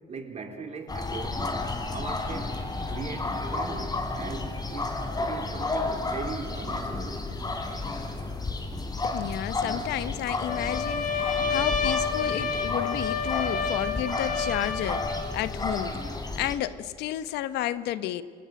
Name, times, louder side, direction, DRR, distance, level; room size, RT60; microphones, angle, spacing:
voice 1, 0.1-1.5 1.9-2.6 2.9-7.2, right 4 dB, 40° right, 4 dB, 3.9 m, -39 dB
sound 1, 0.9-16.6, left 2 dB, 25° left, 3.5 m, -32 dB
voice 2, 9.0-16.0 16.4-18.2, left 13 dB, 85° left, 14 dB, 1.0 m, -32 dB
Trumpet, 10.4-15.2, left 5 dB, 50° left, 3.2 m, -29 dB
27.0 x 20.5 x 9.2 m, 2.2 s
cardioid pair, 110°, 17 cm